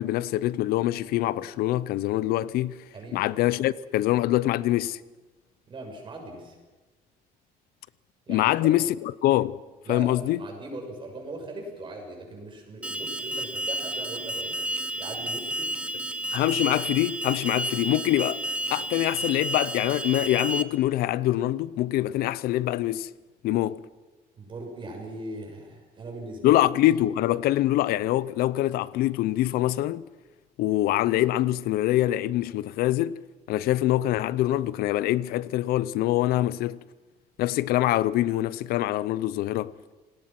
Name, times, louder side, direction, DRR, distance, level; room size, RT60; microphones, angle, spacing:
voice 1, 0.0-2.8 3.1-5.0 8.3-9.6 9.9-10.4 16.3-18.4 18.7-23.1 23.4-23.8 26.4-30.0 30.6-33.2 33.5-36.8 37.4-39.7, left 14 dB, 80° left, 0.7 m, -24 dB
voice 2, 5.7-6.6 8.3-8.8 9.8-15.8 24.4-26.6, right 2 dB, 30° right, 7.0 m, -39 dB
Alarm, 12.8-20.6, right 1 dB, 5° right, 1.0 m, -31 dB
28.5 x 18.5 x 6.0 m
cardioid pair, 130°, 15 cm